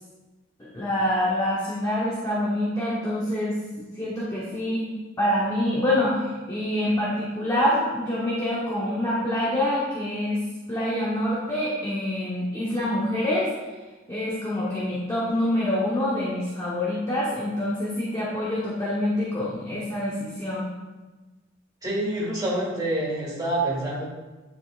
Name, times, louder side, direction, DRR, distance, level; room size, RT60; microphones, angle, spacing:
voice 1, 0.6-4.9 5.2-10.4 10.7-13.5 14.1-20.7, left 1 dB, 15° left, -7 dB, 1.0 m, -26 dB
voice 2, 21.8-24.0, right 1 dB, 20° right, -5 dB, 1.9 m, -27 dB
9.3 x 4.1 x 2.5 m, 1.2 s
head